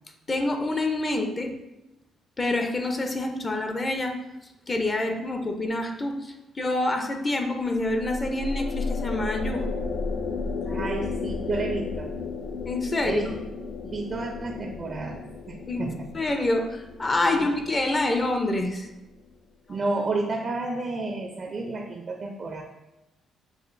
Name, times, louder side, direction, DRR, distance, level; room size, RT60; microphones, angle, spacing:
voice 1, 0.3-1.5 2.4-4.1 4.7-9.7 10.7-10.8 12.6-13.4 15.7-15.9 16.1-18.9, left 2 dB, 30° left, 4 dB, 0.5 m, -27 dB
sound 1, 7.7-19.1, left 4 dB, 85° left, 0.4 m, -34 dB
voice 2, 10.7-12.1 13.0-13.4 13.8-16.1 17.4-17.5 19.7-22.6, right 3 dB, 40° right, 3 dB, 0.4 m, -31 dB
6.4 x 2.4 x 2.5 m, 0.97 s
cardioid pair, 90°, 0 cm